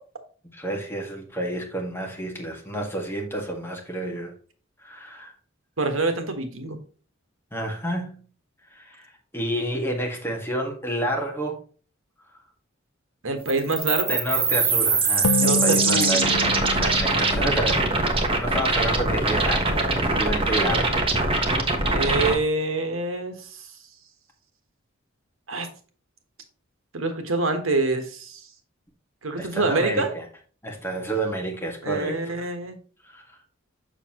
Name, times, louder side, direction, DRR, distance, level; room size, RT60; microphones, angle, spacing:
voice 1, 0.5-4.3 4.8-5.3 7.5-8.2 8.7-11.6 14.1-21.0 29.4-30.2 30.6-32.5 33.0-33.2, right 1 dB, 10° left, 1.8 m, -30 dB
voice 2, 5.8-6.8 13.2-14.2 15.4-16.2 21.9-23.7 25.5-25.7 26.9-28.4 29.2-30.1 31.8-32.8, right 2 dB, 80° right, 1.5 m, -26 dB
sound 1, 13.5-22.3, right 3 dB, 25° right, 1.2 m, -22 dB
sound 2, 15.2-18.7, left 3 dB, 90° left, 0.5 m, -29 dB
7.0 x 6.6 x 3.0 m
head